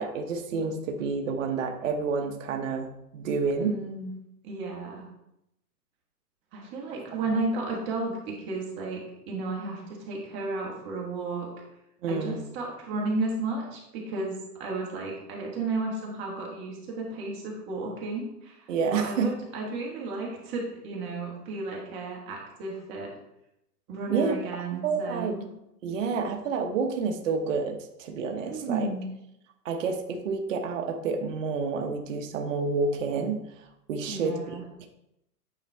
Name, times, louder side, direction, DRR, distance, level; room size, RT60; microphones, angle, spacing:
voice 1, 0.0-3.7 7.3-7.4 12.0-12.4 18.7-19.3 24.1-24.4 24.8-25.4 25.8-28.9 29.6-33.4 33.9-34.4 34.8-34.9, right 5 dB, 50° right, 3 dB, 1.0 m, -29 dB
voice 2, 3.6-4.1 4.4-5.1 6.5-11.5 12.1-23.1 23.9-25.5 28.4-29.1 34.1-34.6, right 3 dB, 25° right, -1 dB, 1.6 m, -33 dB
9.1 x 4.2 x 3.4 m, 0.83 s
hypercardioid pair, 155°, 48 cm